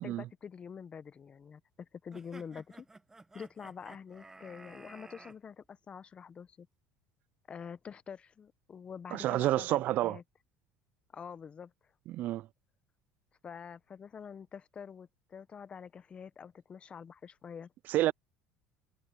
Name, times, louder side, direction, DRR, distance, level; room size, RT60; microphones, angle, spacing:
voice 1, 0.0-2.9 3.3-6.7 7.5-10.2 11.1-11.7 13.4-17.7, left 7 dB, 35° left, 0.9 m, -46 dB
sound 1, 2.1-5.4, right 2 dB, 15° right, 1.2 m, -53 dB
voice 2, 9.1-10.2 12.1-12.5 17.9-18.1, right 15 dB, 55° right, 0.3 m, -29 dB
supercardioid pair, 90°, 3 cm